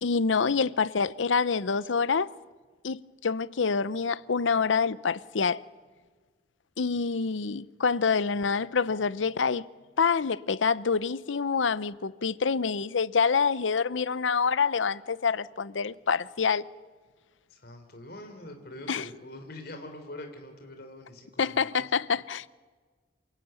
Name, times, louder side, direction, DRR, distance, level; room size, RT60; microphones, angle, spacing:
voice 1, 0.0-2.3 2.8-5.6 6.8-9.7 10.0-16.6 18.9-19.0 21.4-22.5, left 5 dB, 85° left, 0.7 m, -26 dB
voice 2, 17.5-21.9, left 1 dB, 55° left, 3.7 m, -44 dB
28.0 x 18.0 x 9.1 m
head